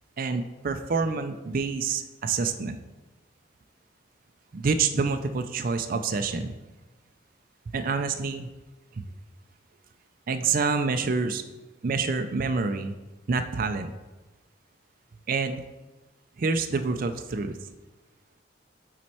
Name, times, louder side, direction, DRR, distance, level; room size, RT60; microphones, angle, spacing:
voice 1, 0.2-2.8 4.5-6.5 7.7-8.5 10.3-11.4 11.8-13.0 13.3-13.9 15.3-15.6 16.4-17.6, right 4 dB, 45° right, 7 dB, 0.4 m, -27 dB
7.5 x 4.3 x 4.2 m, 1.1 s
head